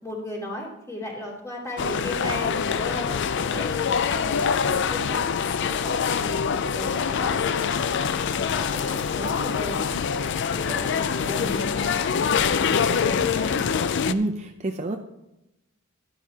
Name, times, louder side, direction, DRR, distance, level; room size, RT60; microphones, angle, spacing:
voice 1, 0.0-3.2 3.5-3.8 4.1-6.3 6.7-7.6 8.1-9.9 10.5-11.9 12.5-13.5, left 1 dB, 15° left, -3 dB, 2.8 m, -36 dB
sound 1, 1.8-14.1, left 6 dB, 60° left, 0.4 m, -25 dB
voice 2, 14.1-15.0, right 2 dB, 35° right, 4 dB, 0.5 m, -27 dB
12.0 x 10.5 x 2.9 m, 0.91 s
head